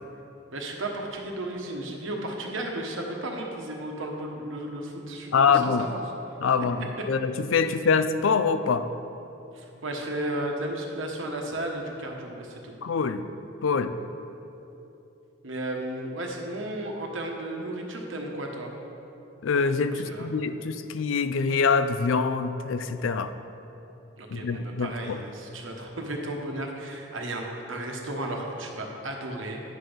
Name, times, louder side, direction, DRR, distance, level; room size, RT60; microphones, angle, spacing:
voice 1, 0.5-6.0 9.5-12.7 15.4-18.7 19.9-20.3 24.2-29.6, right 1 dB, 75° right, 1 dB, 1.2 m, -34 dB
voice 2, 5.3-5.9 6.4-8.9 12.8-13.2 13.6-14.0 19.4-23.3 24.3-25.2, left 5 dB, 80° left, 11 dB, 0.4 m, -25 dB
9.4 x 6.1 x 5.1 m, 2.8 s
head